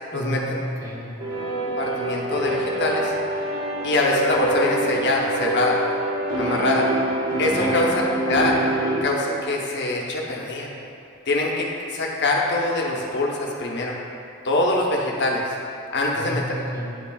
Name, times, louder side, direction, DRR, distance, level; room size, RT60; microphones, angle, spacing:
voice 1, 0.1-1.2 7.6-7.8 16.1-16.9, equal, 15° right, -5 dB, 1.0 m, -31 dB
sound 1, 1.2-9.0, right 2 dB, 85° right, 1.3 m, -26 dB
voice 2, 1.8-3.1 3.8-5.8 6.4-6.9 7.4-8.6 9.0-10.7 11.3-14.0 14.4-15.4 15.9-16.4, left 2 dB, 55° left, -2 dB, 0.9 m, -23 dB
10.5 x 5.8 x 2.3 m, 2.6 s
head